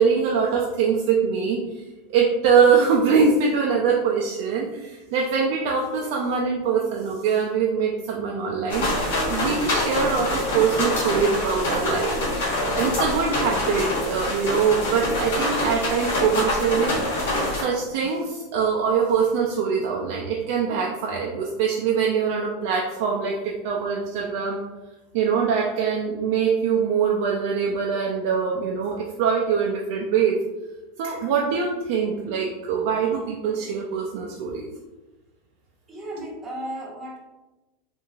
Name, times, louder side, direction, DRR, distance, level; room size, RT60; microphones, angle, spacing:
voice 1, 0.0-1.6 2.1-12.2 12.5-17.0 17.6-24.6 25.1-30.4 31.0-34.7, right 6 dB, 65° right, -1 dB, 0.4 m, -23 dB
sound 1, 8.7-17.6, left 1 dB, 80° left, 0.9 m, -25 dB
voice 2, 35.9-37.2, right 1 dB, 20° right, -3 dB, 0.9 m, -36 dB
3.0 x 2.5 x 2.3 m, 1.1 s
supercardioid pair, 120°, 0 cm